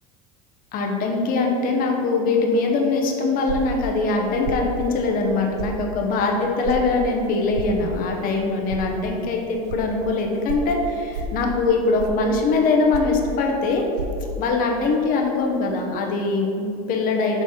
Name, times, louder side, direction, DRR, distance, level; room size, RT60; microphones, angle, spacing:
voice 1, 0.7-13.8 14.4-17.4, left 3 dB, 45° left, 1 dB, 0.9 m, -22 dB
sound 1, 3.5-3.8 4.4-4.7 5.6-5.8 6.6-6.8 7.5-7.8 8.7-8.8 9.7-9.8 10.5-10.7 11.1-11.4 12.0-12.3 12.9-13.2 13.9-14.1, right 4 dB, 80° right, 0.5 m, -30 dB
6.4 x 3.5 x 5.6 m, 2.8 s
supercardioid pair, 125°, 20 cm